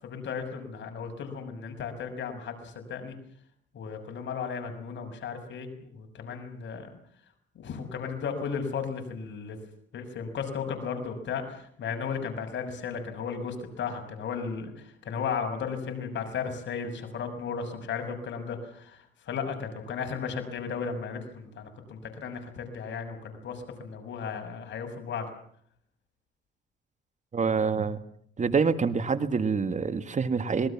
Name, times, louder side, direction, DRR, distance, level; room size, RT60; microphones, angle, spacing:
voice 1, 0.0-3.1 3.7-6.9 7.5-9.6 9.9-25.3, left 6 dB, 65° left, 5 dB, 6.6 m, -35 dB
voice 2, 27.3-28.0 28.4-30.7, right 5 dB, 35° right, 12 dB, 1.8 m, -26 dB
26.5 x 21.5 x 7.3 m, 0.64 s
cardioid pair, 90°, 20 cm